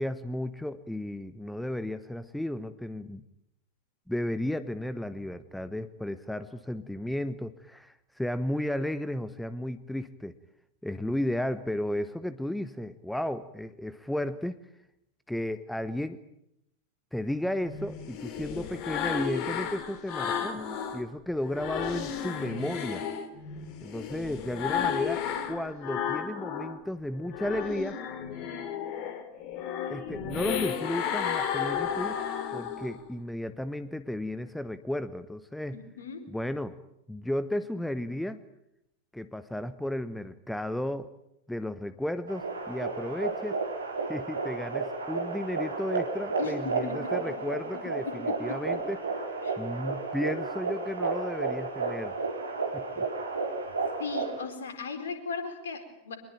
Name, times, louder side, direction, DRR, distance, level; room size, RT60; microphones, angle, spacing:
voice 1, 0.0-3.2 4.1-10.4 10.8-14.6 15.3-16.2 17.1-20.6 20.9-23.0 23.8-28.0 29.9-32.2 32.5-35.8 36.3-36.8 37.1-38.4 39.1-41.1 41.5-43.6 44.1-49.0 49.6-52.2 52.7-53.1, left 1 dB, 5° left, 14 dB, 1.0 m, -34 dB
sound 1, 17.6-21.0 21.4-26.8 27.1-33.0, left 8 dB, 40° left, 2.9 m, -33 dB
voice 2, 35.7-36.2 46.4-47.3 48.0-48.8 49.4-49.6 54.0-56.2, left 5 dB, 65° left, 7 dB, 4.5 m, -37 dB
sound 2, 42.3-54.4, right 4 dB, 75° right, 4.1 m, -32 dB
24.5 x 21.5 x 9.1 m, 0.80 s
figure-of-eight pair, 90°, 0 cm